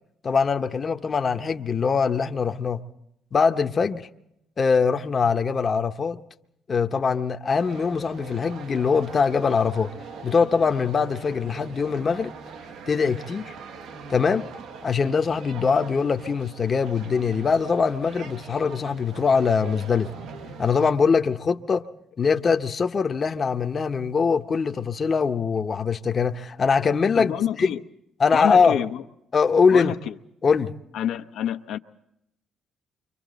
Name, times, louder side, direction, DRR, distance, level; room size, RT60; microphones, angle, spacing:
voice 1, 0.2-2.8 3.3-4.1 4.6-6.2 6.7-9.9 10.2-12.3 12.9-13.4 14.1-14.5 14.8-20.1 20.6-21.9 22.2-27.3 27.6-27.7 28.2-28.8 29.3-29.9 30.4-30.7, left 5 dB, 35° left, 0.7 m, -22 dB
sound 1, 7.6-20.9, right 5 dB, 85° right, 1.0 m, -42 dB
voice 2, 27.2-27.8 28.3-29.0 29.7-30.2 30.9-31.8, left 10 dB, 85° left, 0.7 m, -28 dB
29.5 x 25.0 x 4.0 m
cardioid pair, 115°, 0 cm